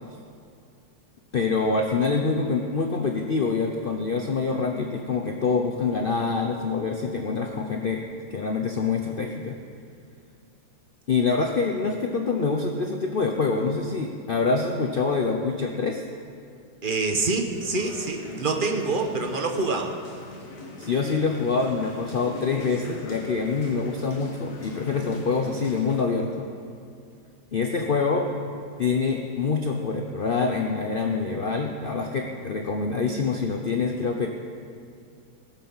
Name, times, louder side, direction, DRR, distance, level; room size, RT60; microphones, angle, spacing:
voice 1, 1.3-8.0 8.3-9.6 11.1-16.0 20.8-26.5 27.5-28.3 28.8-34.3, left 4 dB, 70° left, 2 dB, 0.5 m, -25 dB
voice 2, 16.8-19.9, right 3 dB, 35° right, 4 dB, 0.9 m, -26 dB
sound 1, 17.5-26.0, left 2 dB, 45° left, 1.6 m, -41 dB
18.5 x 7.5 x 5.5 m, 2.4 s
omnidirectional pair, 2.1 m